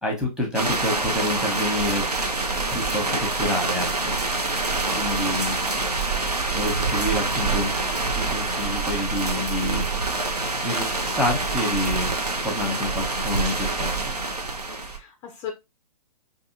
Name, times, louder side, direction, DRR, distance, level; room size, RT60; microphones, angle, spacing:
voice 1, 0.0-2.1 2.7-4.2 5.0-5.6 6.5-7.7 8.1-9.9 10.6-12.1 12.4-13.9, left 1 dB, 5° right, 1.0 m, -28 dB
sound 1, 0.5-15.0, right 3 dB, 80° right, 0.8 m, -26 dB
voice 2, 5.1-5.5 14.9-15.5, left 7 dB, 15° left, 0.4 m, -37 dB
5.3 x 2.7 x 2.6 m
figure-of-eight pair, 120°, 20 cm